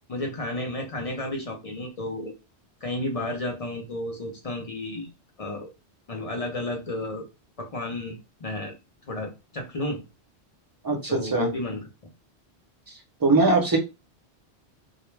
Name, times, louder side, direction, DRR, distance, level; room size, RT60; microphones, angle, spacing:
voice 1, 0.1-2.3 2.8-5.1 5.4-5.7 6.1-7.3 7.6-8.8 9.1-10.0 11.1-11.9, left 1 dB, 45° left, 1 dB, 0.5 m, -32 dB
voice 2, 10.8-11.5 13.2-13.8, right 3 dB, 25° right, 1 dB, 0.6 m, -21 dB
2.3 x 2.1 x 3.1 m, 0.26 s
omnidirectional pair, 1.1 m